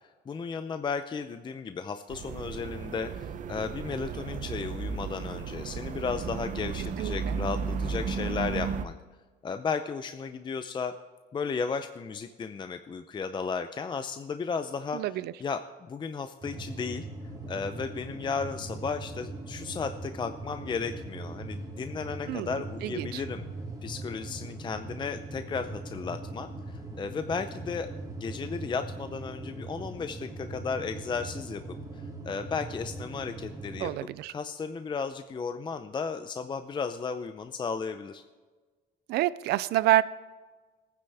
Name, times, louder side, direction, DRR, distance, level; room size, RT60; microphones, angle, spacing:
voice 1, 0.3-8.9 9.4-10.9 11.3-15.6 15.9-17.0 17.5-23.4 23.8-27.9 28.2-33.9 34.3-38.2, left 5 dB, 25° left, 9 dB, 0.5 m, -34 dB
sound 1, 2.1-8.9, right 6 dB, 50° right, 0.7 m, -34 dB
voice 2, 7.0-7.3 14.9-15.3 22.3-22.5 22.8-23.2 33.8-34.3 39.1-40.0, right 16 dB, 75° right, 17 dB, 0.4 m, -27 dB
sound 2, 16.4-33.9, right 2 dB, 20° right, 2.4 m, -40 dB
18.5 x 9.7 x 3.4 m, 1.4 s
cardioid pair, 110°, 17 cm